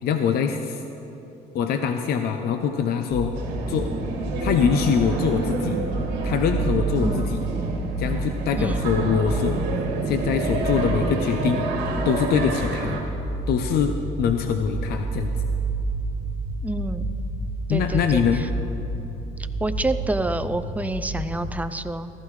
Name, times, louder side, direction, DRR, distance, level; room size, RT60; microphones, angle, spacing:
voice 1, 0.0-0.8 1.5-3.3 3.7-3.9 4.4-5.8 6.2-7.4 8.0-9.6 10.1-11.6 12.0-13.0 13.5-15.3 17.7-18.4, left 7 dB, 70° left, 6 dB, 0.6 m, -23 dB
sound 1, 3.1-21.5, right 2 dB, 25° left, 3.4 m, -30 dB
sound 2, 3.3-13.0, right 4 dB, 85° right, 1.8 m, -29 dB
voice 2, 16.6-17.1 17.7-18.2 19.6-22.1, right 2 dB, 10° right, 11 dB, 0.4 m, -28 dB
15.5 x 14.0 x 3.2 m, 3.0 s
cardioid pair, 110°, 17 cm